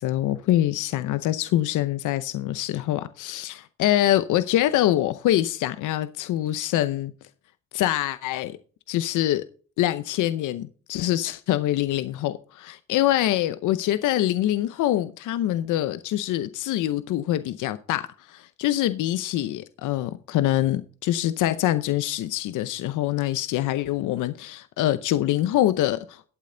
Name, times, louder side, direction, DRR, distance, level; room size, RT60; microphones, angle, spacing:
voice 1, 0.0-7.1 7.7-8.6 8.9-9.4 9.8-26.3, left 13 dB, 85° left, 0.8 m, -25 dB
12.5 x 8.5 x 3.8 m
cardioid pair, 90°, 30 cm